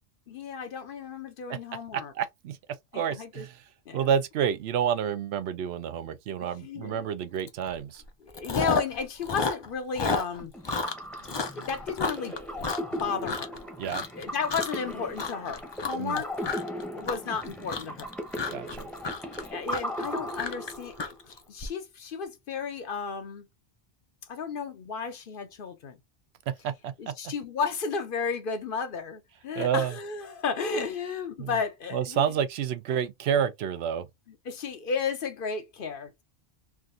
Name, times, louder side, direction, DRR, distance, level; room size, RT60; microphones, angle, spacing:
voice 1, 0.3-2.1 2.9-3.5 3.9-4.1 6.6-7.1 8.2-10.5 11.5-12.4 13.0-13.5 14.1-16.3 16.9-18.1 19.5-23.5 24.3-26.0 27.0-32.4 34.3-36.2, left 5 dB, 60° left, 0.8 m, -33 dB
voice 2, 1.9-2.6 2.9-3.5 3.9-8.0 13.8-14.0 16.0-16.2 18.5-18.9 26.6-26.9 29.6-29.9 31.4-31.5 31.9-34.1, right 8 dB, 75° right, 0.8 m, -29 dB
Chewing mastication, 7.5-7.7 8.0-9.0 9.2-13.6 13.9-14.2 14.5-14.9 15.2-21.7, left 4 dB, 35° left, 0.4 m, -31 dB
sound 1, 10.4-21.2, equal, ahead, 0.7 m, -37 dB
3.5 x 2.4 x 2.4 m
omnidirectional pair, 1.1 m